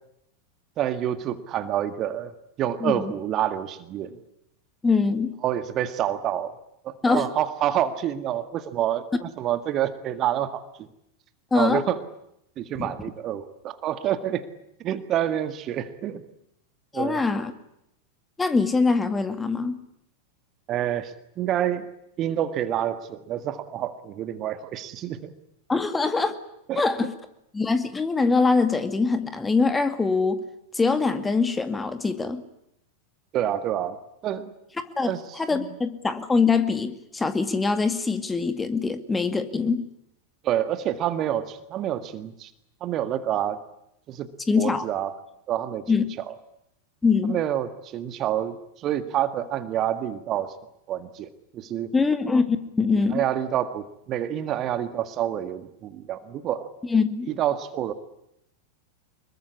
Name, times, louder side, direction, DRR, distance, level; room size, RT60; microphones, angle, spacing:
voice 1, 0.8-4.2 5.4-6.6 6.8-10.9 11.5-12.0 12.6-14.5 14.8-16.2 16.9-17.2 20.7-21.9 22.2-25.3 26.7-26.8 33.3-34.5 35.0-35.7 40.4-42.5 42.8-43.6 44.1-44.3 44.5-45.1 45.5-45.8 46.2-46.3 47.3-50.5 50.9-51.9 53.1-56.7 57.3-57.9, right 11 dB, 35° right, 11 dB, 1.8 m, -28 dB
voice 2, 2.8-3.1 4.8-5.3 7.0-7.3 11.5-11.8 12.8-12.9 16.9-17.5 18.4-19.8 25.7-26.3 26.8-27.1 27.5-30.4 30.7-32.4 35.0-39.8 44.5-44.8 45.9-46.1 47.0-47.4 51.9-53.2 56.9-57.3, left 4 dB, 10° left, 10 dB, 2.2 m, -23 dB
25.0 x 22.0 x 9.8 m, 0.78 s
figure-of-eight pair, 90°, 0 cm